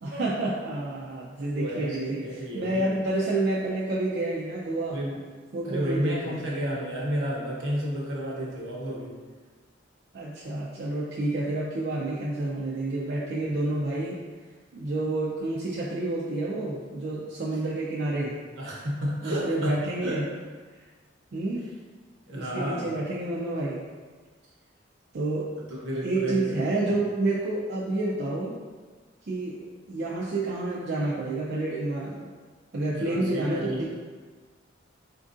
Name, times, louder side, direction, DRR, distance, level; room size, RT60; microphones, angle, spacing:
voice 1, 0.0-2.2 2.5-5.0 5.5-6.4 10.1-14.2 14.7-18.4 19.2-20.3 21.3-21.7 22.3-23.8 25.1-25.6 26.0-28.6 29.3-32.3 32.7-33.9, right 2 dB, 55° right, -6 dB, 0.4 m, -29 dB
voice 2, 1.6-2.9 4.9-5.2 5.6-9.2 18.6-20.2 22.3-23.0 25.7-27.0 32.9-33.9, equal, 75° right, -4 dB, 0.9 m, -32 dB
4.4 x 2.5 x 2.5 m, 1.5 s
head